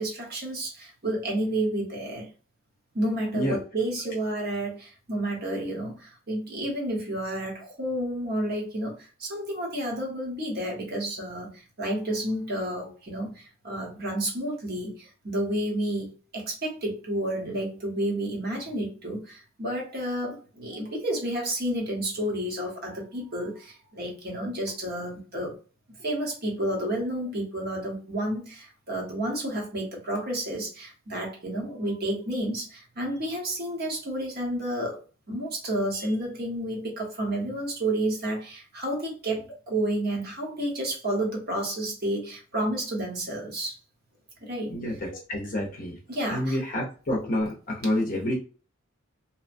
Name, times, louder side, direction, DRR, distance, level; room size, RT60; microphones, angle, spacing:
voice 1, 0.0-2.3 2.9-25.6 26.0-35.0 35.3-43.8 44.4-44.8 46.1-46.6, right 1 dB, 50° right, -1 dB, 1.0 m, -30 dB
voice 2, 44.7-46.0 46.3-48.4, left 1 dB, 40° left, -1 dB, 0.6 m, -28 dB
2.8 x 2.2 x 2.5 m, 0.36 s
head